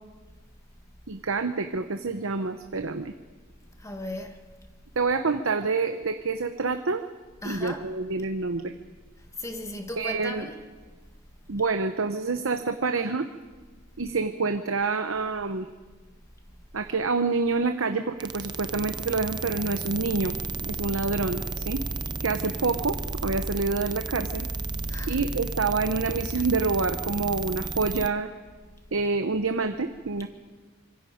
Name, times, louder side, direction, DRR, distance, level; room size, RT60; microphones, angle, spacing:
voice 1, 1.1-3.1 5.0-7.0 7.4-8.7 10.0-10.5 11.5-13.3 14.0-15.7 16.7-20.4 20.7-21.8 22.2-24.5 25.1-28.3 28.9-30.3, right 4 dB, 65° right, 0.9 m, -27 dB
voice 2, 3.8-4.4 7.4-7.8 9.4-10.6 24.9-25.2, left 1 dB, 15° left, 1.7 m, -36 dB
sound 1, 18.2-28.1, right 3 dB, 20° right, 0.6 m, -33 dB
25.5 x 23.0 x 5.1 m
head